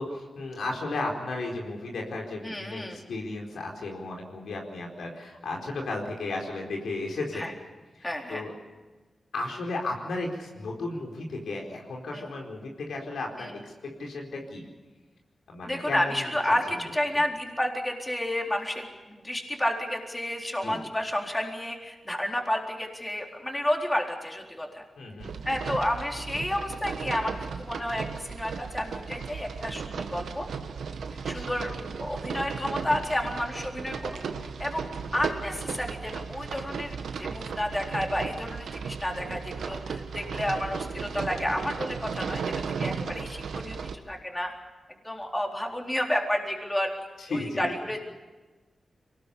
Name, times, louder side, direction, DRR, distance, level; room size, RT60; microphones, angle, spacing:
voice 1, 0.0-7.5 8.0-8.5 9.3-14.6 15.5-16.6 20.6-20.8 25.0-25.3 31.3-31.5 47.2-47.7, left 2 dB, 90° left, 0 dB, 4.4 m, -34 dB
voice 2, 2.4-3.0 7.3-7.5 8.0-8.4 12.1-12.2 13.4-13.5 15.7-24.8 25.4-30.5 31.1-31.7 32.0-34.2 34.6-34.8 35.1-43.8 44.1-44.5 45.0-46.9 47.3-48.0, left 1 dB, 15° left, 1 dB, 4.0 m, -31 dB
sound 1, 25.2-44.0, right 5 dB, 90° right, 1.4 m, -35 dB
23.5 x 19.5 x 8.5 m, 1.2 s
cardioid pair, 55°, 0 cm